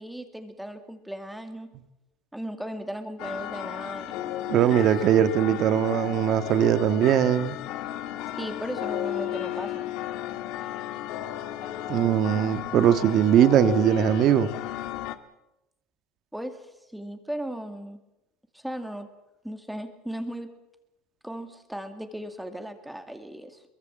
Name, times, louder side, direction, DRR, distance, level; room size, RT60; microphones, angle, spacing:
voice 1, 0.0-1.7 2.3-4.9 8.4-9.9 16.3-18.0 18.5-19.1 19.4-20.5 21.2-23.6, equal, 5° right, 7 dB, 2.3 m, -37 dB
sound 1, 3.2-15.1, left 13 dB, 65° left, 1.6 m, -34 dB
voice 2, 4.5-7.5 11.9-14.5, right 10 dB, 45° right, 11 dB, 1.6 m, -21 dB
23.0 x 21.5 x 7.6 m, 0.89 s
cardioid pair, 140°, 0 cm